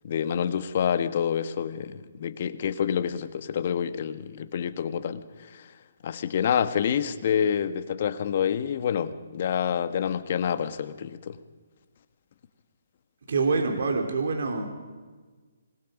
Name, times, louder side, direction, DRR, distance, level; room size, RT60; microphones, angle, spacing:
voice 1, 0.0-5.7 6.0-11.4, left 8 dB, 50° left, 11 dB, 1.4 m, -27 dB
voice 2, 13.3-14.6, right 4 dB, 60° right, 3 dB, 3.7 m, -25 dB
26.5 x 20.5 x 5.4 m, 1.4 s
hypercardioid pair, 145°, 0 cm